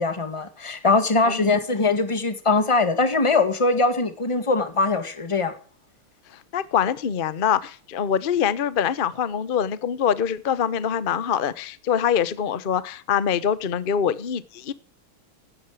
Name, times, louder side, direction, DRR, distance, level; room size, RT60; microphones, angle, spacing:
voice 1, 0.0-5.5, left 3 dB, 15° left, 1.6 m, -22 dB
voice 2, 6.5-14.7, left 8 dB, 85° left, 0.4 m, -24 dB
16.0 x 13.0 x 4.8 m
omnidirectional pair, 2.4 m